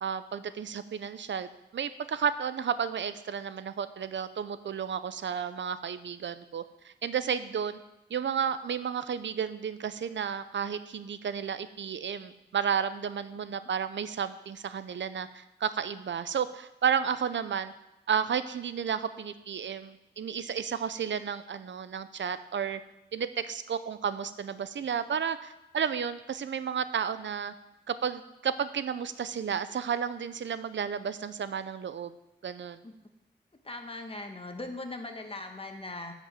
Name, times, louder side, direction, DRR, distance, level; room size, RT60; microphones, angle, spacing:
voice 1, 0.0-7.8 8.1-17.7 18.1-22.8 23.1-27.5 27.9-32.1 32.4-32.8, right 7 dB, 85° right, 13 dB, 0.6 m, -32 dB
voice 2, 33.6-36.1, left 2 dB, 30° left, 4 dB, 1.3 m, -39 dB
10.5 x 5.2 x 7.5 m, 0.91 s
wide cardioid pair, 75°, 19 cm